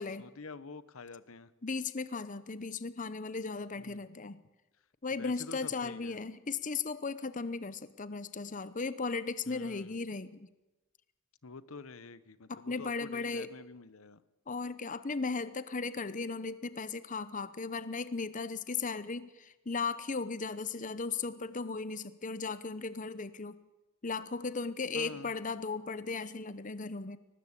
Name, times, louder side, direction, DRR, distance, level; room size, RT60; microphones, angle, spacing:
voice 1, 0.2-1.5 3.8-4.1 5.1-6.2 9.5-10.0 11.4-14.2 24.9-25.3, left 4 dB, 75° left, 16 dB, 1.1 m, -47 dB
voice 2, 1.6-4.4 5.0-10.4 12.5-13.5 14.5-23.5 24.0-27.2, left 4 dB, 35° left, 14 dB, 0.9 m, -36 dB
23.0 x 19.0 x 8.3 m, 1.0 s
head